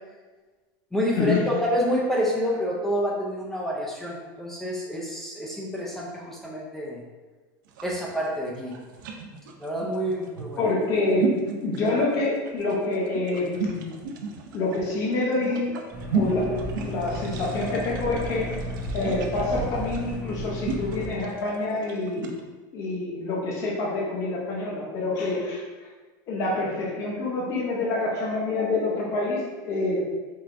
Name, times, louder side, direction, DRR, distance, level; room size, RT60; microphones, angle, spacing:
voice 1, 0.9-7.0 7.8-8.7 9.6-10.7, equal, 5° left, -4 dB, 0.3 m, -28 dB
sound 1, 7.6-22.4, right 5 dB, 80° right, 0.6 m, -34 dB
voice 2, 10.6-11.3 11.6-13.9 14.5-15.7 16.1-18.5 18.9-22.3 22.7-25.9 26.3-30.0, left 2 dB, 30° left, -4 dB, 0.7 m, -27 dB
sound 2, 15.9-21.1, equal, 15° right, 1.0 m, -34 dB
4.6 x 3.2 x 2.5 m, 1.3 s
supercardioid pair, 175°, 11 cm